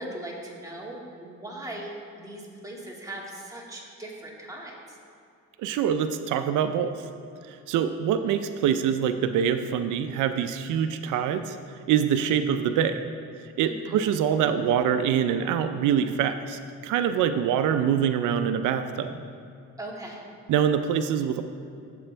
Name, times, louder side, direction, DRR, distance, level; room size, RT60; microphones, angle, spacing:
voice 1, 0.0-5.0 13.7-14.0 19.8-20.2, right 1 dB, 10° right, -3 dB, 2.1 m, -39 dB
voice 2, 5.6-6.9 7.5-11.6 11.9-13.0 13.6-19.2 20.5-21.4, right 8 dB, 85° right, 9 dB, 0.5 m, -25 dB
13.0 x 7.7 x 3.4 m, 2.5 s
cardioid pair, 90°, 30 cm